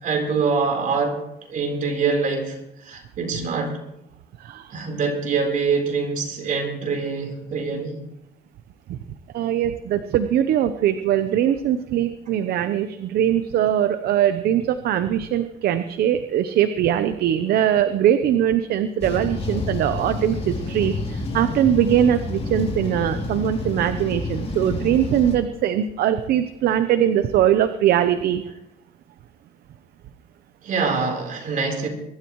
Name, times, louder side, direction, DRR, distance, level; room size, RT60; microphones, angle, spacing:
voice 1, 0.0-1.2 1.5-3.8 4.7-8.0 30.6-31.9, right 4 dB, 50° right, 2 dB, 4.0 m, -24 dB
voice 2, 4.4-4.7 8.9-9.0 9.3-28.4, right 10 dB, 65° right, 10 dB, 0.8 m, -21 dB
sound 1, 19.0-25.4, left 3 dB, 35° left, 3.3 m, -29 dB
23.0 x 13.0 x 3.1 m, 0.83 s
cardioid pair, 110°, 17 cm